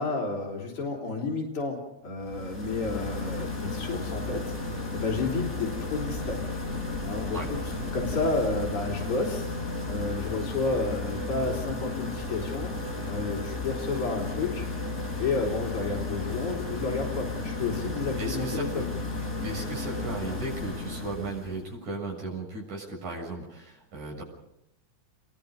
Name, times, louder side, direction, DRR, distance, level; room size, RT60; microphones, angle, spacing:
voice 1, 0.0-6.4 7.0-9.5 9.8-12.7 13.1-14.7 15.2-18.9, left 3 dB, 45° left, -3 dB, 4.7 m, -31 dB
sound 1, 2.2-21.6, left 2 dB, 20° left, 5.3 m, -34 dB
voice 2, 18.2-18.8 19.4-24.2, right 2 dB, 85° right, -1 dB, 8.8 m, -36 dB
28.5 x 22.5 x 5.3 m, 0.81 s
omnidirectional pair, 3.4 m